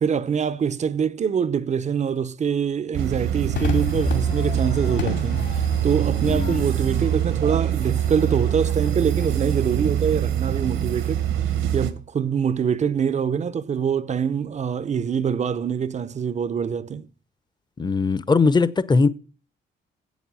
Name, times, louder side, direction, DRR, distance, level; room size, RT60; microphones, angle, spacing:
voice 1, 0.0-11.2 11.7-17.1, right 7 dB, 35° right, 0.6 m, -24 dB
sound 1, 2.9-11.9, right 10 dB, 75° right, 1.2 m, -24 dB
Crowd / Fireworks, 3.6-10.1, left 4 dB, 65° left, 2.5 m, -32 dB
voice 2, 6.2-6.6 17.8-19.1, left 4 dB, 20° left, 0.7 m, -20 dB
7.9 x 7.2 x 7.5 m
cardioid pair, 90°, 20 cm